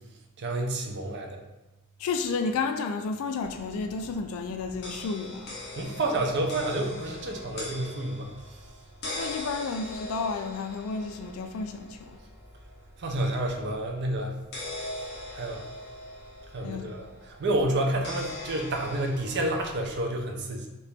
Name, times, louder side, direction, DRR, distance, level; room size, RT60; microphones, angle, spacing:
voice 1, 0.4-1.4 5.8-8.3 13.0-14.3 15.3-15.6 16.5-17.1 17.4-20.7, right 1 dB, 50° right, 2 dB, 0.5 m, -29 dB
voice 2, 2.0-5.6 9.1-12.2 16.6-16.9, left 4 dB, 75° left, 10 dB, 0.3 m, -31 dB
sound 1, 3.4-20.0, left 2 dB, 50° left, 0.8 m, -42 dB
2.9 x 2.8 x 3.3 m, 1.1 s
head